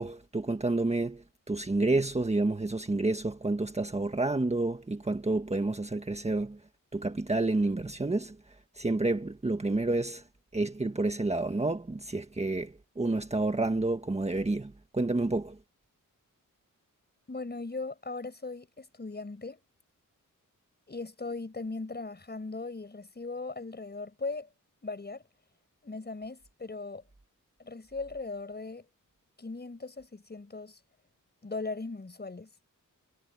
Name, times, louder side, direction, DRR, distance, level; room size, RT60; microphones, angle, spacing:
voice 1, 0.0-6.6 6.9-8.4 8.7-10.2 10.5-15.6, right 2 dB, 20° right, 1.5 m, -29 dB
voice 2, 17.3-19.6 20.9-24.5 24.8-25.2 25.8-27.0 27.6-28.9 29.4-30.8 31.4-32.5, left 3 dB, 30° left, 5.2 m, -38 dB
wide cardioid pair, 125°, 33 cm